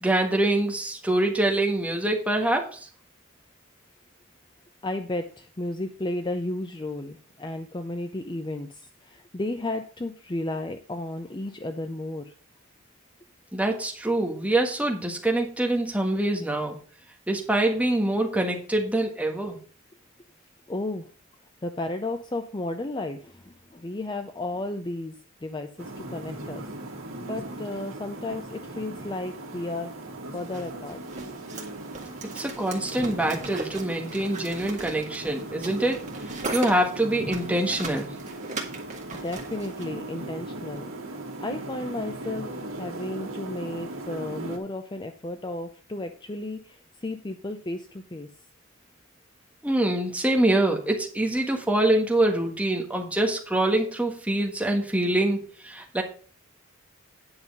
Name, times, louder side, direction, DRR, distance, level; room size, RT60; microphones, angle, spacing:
voice 1, 0.0-2.9 13.5-16.8 17.3-19.6 32.3-38.1 49.6-56.0, right 1 dB, 5° right, 1 dB, 1.5 m, -25 dB
voice 2, 4.8-12.3 20.7-21.1 21.6-25.1 25.4-26.6 27.2-29.9 30.3-31.0 39.1-40.9 41.4-48.3, left 2 dB, 20° left, 7 dB, 0.5 m, -33 dB
sound 1, 25.8-44.6, right 2 dB, 80° right, 1.8 m, -38 dB
sound 2, 30.5-39.9, right 3 dB, 35° right, 1.9 m, -39 dB
9.6 x 5.6 x 5.4 m, 0.42 s
head